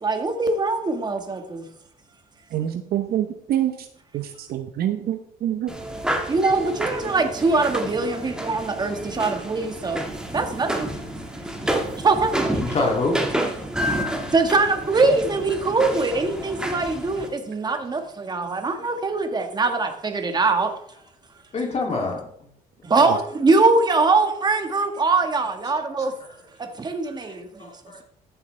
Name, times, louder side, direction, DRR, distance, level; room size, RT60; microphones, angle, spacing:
voice 1, 0.0-1.7 6.3-10.0 10.3-10.9 11.7-12.4 14.3-20.7 22.8-26.1 26.6-27.7, right 3 dB, 25° right, 6 dB, 1.6 m, -22 dB
voice 2, 2.5-3.9 4.1-5.7 23.1-23.2, right 11 dB, 65° right, 7 dB, 0.9 m, -26 dB
sound 1, 5.7-17.3, right 1 dB, 5° right, 1.7 m, -29 dB
voice 3, 12.6-13.2 21.5-22.2 25.8-25.9 27.3-28.0, left 3 dB, 40° left, 0 dB, 2.7 m, -26 dB
14.0 x 8.0 x 3.3 m, 0.68 s
cardioid pair, 110°, 17 cm